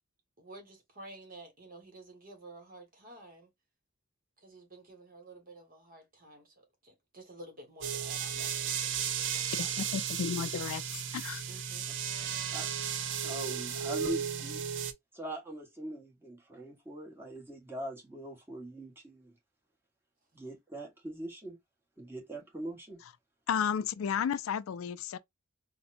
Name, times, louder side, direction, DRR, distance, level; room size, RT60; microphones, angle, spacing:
voice 1, 0.4-3.5 4.4-9.8 11.5-11.9 12.2-12.5, right 1 dB, 45° right, 1.4 m, -52 dB
sound 1, 7.8-14.9, right 8 dB, 60° right, 0.5 m, -34 dB
voice 2, 9.6-11.4 23.5-25.2, left 7 dB, 75° left, 0.3 m, -33 dB
voice 3, 12.2-12.7 13.2-14.6 15.1-19.3 20.3-21.6 22.0-23.0, right 1 dB, 10° right, 1.2 m, -42 dB
4.1 x 2.2 x 2.5 m
head